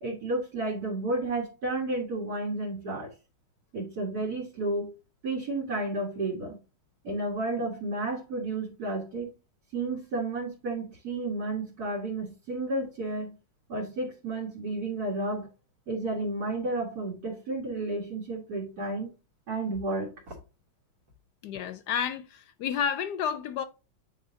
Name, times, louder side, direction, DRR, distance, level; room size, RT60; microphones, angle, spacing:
voice 1, 0.0-3.1 3.7-4.9 5.2-6.6 7.0-9.3 9.7-13.3 13.7-15.5 15.9-19.1 19.5-20.3, right 2 dB, 55° right, 1.9 m, -32 dB
voice 2, 21.4-23.6, left 7 dB, 70° left, 1.1 m, -31 dB
8.4 x 4.3 x 2.7 m
omnidirectional pair, 2.0 m